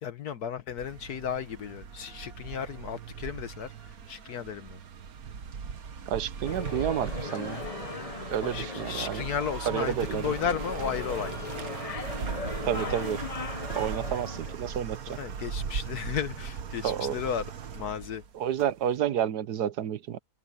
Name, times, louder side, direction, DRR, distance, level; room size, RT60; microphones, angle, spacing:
voice 1, 0.0-3.7 4.1-4.8 7.9-8.0 8.4-11.3 15.2-18.2, left 8 dB, 70° left, 1.5 m, -34 dB
sound 1, 0.8-18.9, right 6 dB, 65° right, 1.7 m, -38 dB
voice 2, 6.1-7.6 8.3-9.2 9.6-10.3 12.7-13.2 13.7-15.2 16.8-17.2 18.3-20.2, right 9 dB, 80° right, 1.5 m, -30 dB
sound 2, 6.4-14.5, left 5 dB, 40° left, 0.5 m, -39 dB
open air
omnidirectional pair, 1.7 m